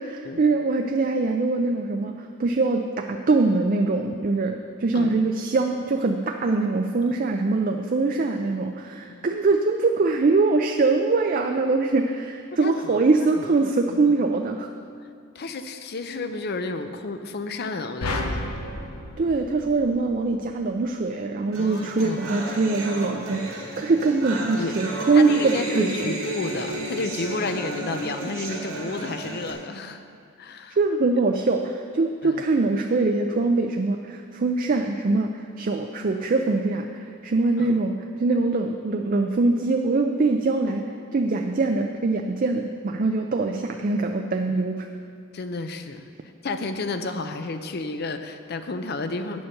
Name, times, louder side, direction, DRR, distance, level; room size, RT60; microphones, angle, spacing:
voice 1, 0.0-14.7 19.2-26.1 30.8-37.9 38.2-44.9, right 3 dB, 40° right, 4 dB, 0.4 m, -23 dB
voice 2, 12.6-14.2 15.3-18.4 21.6-22.3 24.6-24.7 25.1-30.0 30.4-30.8 32.2-32.4 37.6-37.8 45.3-46.1 46.4-49.4, left 3 dB, 50° left, 9 dB, 0.6 m, -31 dB
sound 1, 18.0-20.4, left 2 dB, 90° left, 0.9 m, -32 dB
sound 2, 21.5-29.5, right 2 dB, 80° right, 2.1 m, -33 dB
9.0 x 7.0 x 6.5 m, 2.4 s
head